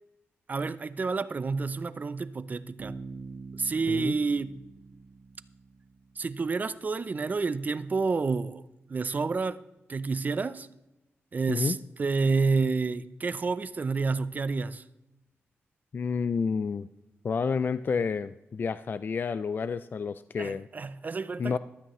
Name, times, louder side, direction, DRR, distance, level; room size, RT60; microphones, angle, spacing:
voice 1, 0.5-2.9 3.6-4.6 6.2-8.6 8.9-9.6 9.9-10.7 11.3-14.8 20.4-21.6, right 4 dB, 35° right, 0.5 m, -29 dB
Bass guitar, 2.8-6.5, right 4 dB, 75° right, 1.2 m, -45 dB
voice 2, 15.9-16.9 17.2-20.7 21.4-21.6, left 5 dB, 45° left, 0.3 m, -30 dB
15.0 x 13.0 x 3.1 m
wide cardioid pair, 120°, 5 cm